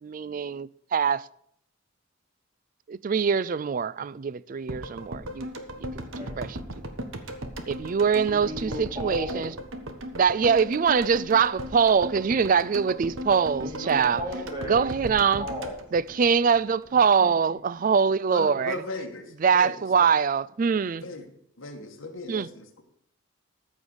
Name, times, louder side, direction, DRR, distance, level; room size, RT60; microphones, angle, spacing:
voice 1, 0.0-1.3 2.9-5.5 5.8-5.9 6.4-6.6 7.7-9.5 10.1-14.2 14.7-15.5 15.9-18.8 19.4-21.0 22.3-22.5, right 6 dB, 40° right, 0.3 m, -23 dB
sound 1, 4.7-16.9 17.1-17.2, equal, 70° right, 1.2 m, -37 dB
voice 2, 5.9-6.4 8.2-9.5 13.6-14.9 15.4-15.8, left 1 dB, 20° right, 3.1 m, -36 dB
voice 3, 18.3-20.1 21.0-21.3 21.6-22.8, left 2 dB, 65° left, 1.8 m, -37 dB
14.0 x 5.3 x 6.3 m
head